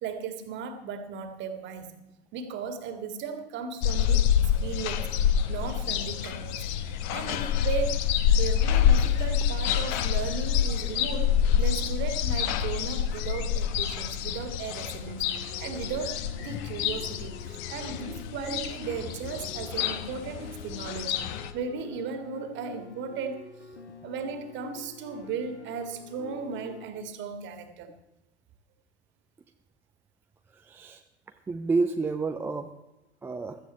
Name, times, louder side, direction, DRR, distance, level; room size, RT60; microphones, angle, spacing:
voice 1, 0.0-2.0 2.3-5.2 5.5-6.8 7.1-8.1 8.4-16.2 16.4-23.5 24.0-27.9, right 5 dB, 35° right, 8 dB, 2.0 m, -36 dB
sound 1, 3.8-21.5, left 9 dB, 40° left, 1.2 m, -27 dB
sound 2, 15.0-26.9, left 4 dB, 75° left, 2.3 m, -47 dB
voice 2, 30.5-31.0 31.5-32.7 33.2-33.6, right 3 dB, 5° right, 6 dB, 0.4 m, -29 dB
16.0 x 13.5 x 4.5 m, 0.97 s
figure-of-eight pair, 95°, 34 cm